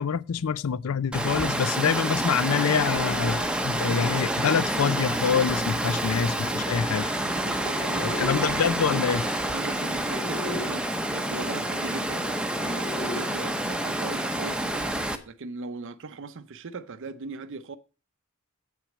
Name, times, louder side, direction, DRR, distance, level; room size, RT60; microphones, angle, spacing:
voice 1, 0.0-7.1 8.0-9.2, left 7 dB, 70° left, 0.4 m, -26 dB
Water, 1.1-15.2, right 1 dB, 5° right, 0.7 m, -28 dB
sound 1, 2.8-10.7 11.9-13.2, left 2 dB, 15° left, 2.2 m, -41 dB
voice 2, 7.4-8.7 9.4-10.9 11.1-12.3 12.6-14.9 15.3-17.8, right 3 dB, 60° right, 0.6 m, -39 dB
8.3 x 6.0 x 6.1 m
head